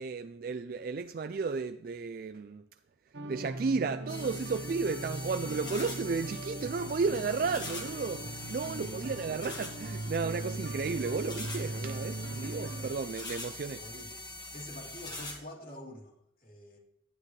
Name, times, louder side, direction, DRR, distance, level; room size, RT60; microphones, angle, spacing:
voice 1, 0.0-2.7 3.3-13.8, right 4 dB, 55° right, 0.4 m, -33 dB
sound 1, 3.1-12.9, right 2 dB, 75° right, 1.0 m, -40 dB
sound 2, 4.1-15.4, left 2 dB, 25° left, 1.7 m, -43 dB
voice 2, 8.7-9.2 13.8-14.2 14.5-16.8, left 1 dB, 55° left, 2.8 m, -46 dB
11.0 x 9.7 x 3.2 m
head